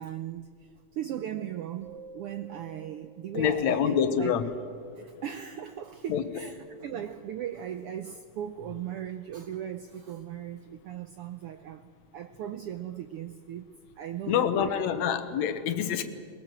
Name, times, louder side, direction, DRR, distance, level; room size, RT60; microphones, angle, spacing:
voice 1, 0.0-4.3 5.0-13.6 14.0-15.0, right 10 dB, 80° right, 9 dB, 1.3 m, -38 dB
sound 1, 1.8-4.4, right 3 dB, 30° left, 3.3 m, -51 dB
voice 2, 3.3-4.5 5.0-5.2 6.1-6.5 14.2-16.0, left 8 dB, 75° left, 10 dB, 2.3 m, -27 dB
22.0 x 20.5 x 7.5 m, 2.2 s
omnidirectional pair, 3.3 m